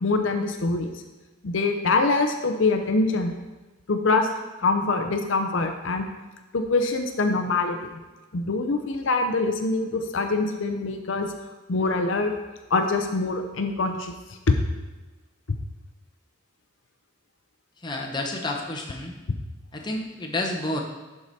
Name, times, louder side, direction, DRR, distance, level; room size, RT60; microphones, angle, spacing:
voice 1, 0.0-0.9 1.4-3.3 3.9-4.3 4.6-6.0 6.5-8.0 8.3-11.3 11.7-12.3 12.7-14.1 14.5-14.6, left 3 dB, 65° left, 6 dB, 0.6 m, -24 dB
voice 2, 17.8-19.1 19.7-20.8, left 2 dB, 20° left, 0 dB, 0.9 m, -30 dB
11.5 x 4.8 x 4.2 m, 1.2 s
head